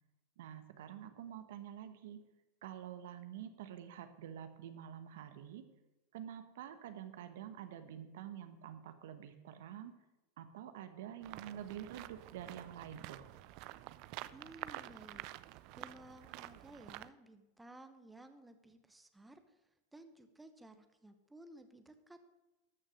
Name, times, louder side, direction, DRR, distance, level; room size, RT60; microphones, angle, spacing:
voice 1, 0.4-2.2 2.6-5.6 6.1-9.9 10.4-13.3, right 10 dB, 75° right, 9 dB, 1.1 m, -48 dB
sound 1, 11.2-17.1, right 16 dB, 55° right, 0.4 m, -49 dB
voice 2, 14.3-19.6 19.9-22.3, right 1 dB, 10° right, 8 dB, 1.0 m, -56 dB
13.0 x 6.4 x 6.4 m, 1.0 s
hypercardioid pair, 105°, 0 cm